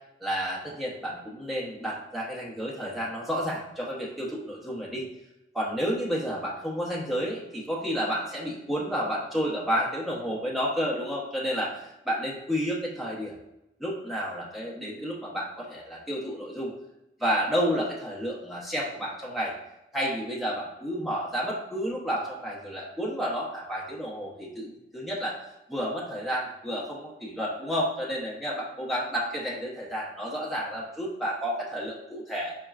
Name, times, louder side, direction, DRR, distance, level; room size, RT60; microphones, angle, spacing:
voice 1, 0.2-5.1 5.5-13.3 13.8-16.7 17.2-19.5 19.9-25.4 25.7-32.6, equal, ahead, -6 dB, 0.9 m, -31 dB
4.5 x 4.3 x 2.4 m, 0.91 s
head